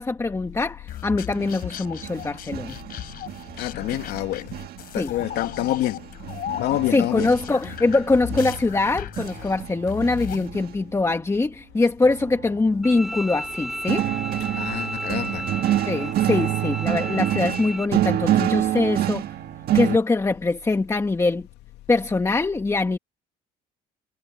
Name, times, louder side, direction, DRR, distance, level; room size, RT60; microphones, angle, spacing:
voice 1, 0.0-2.8 4.9-5.2 6.9-14.1 15.8-19.2 19.7-21.5 21.9-23.0, left 3 dB, 15° left, 1.9 m, -23 dB
sound 1, 0.9-10.5, left 11 dB, 65° left, 3.6 m, -37 dB
sound 2, 1.3-4.9 5.2-10.7 12.0-13.0 13.9-20.0, right 13 dB, 65° right, 1.8 m, -28 dB
voice 2, 3.6-4.5 4.9-6.0 6.5-7.3 14.5-15.4, left 15 dB, 85° left, 2.2 m, -27 dB
Bowed string instrument, 12.8-17.9, equal, ahead, 4.5 m, -33 dB
cardioid pair, 110°, 17 cm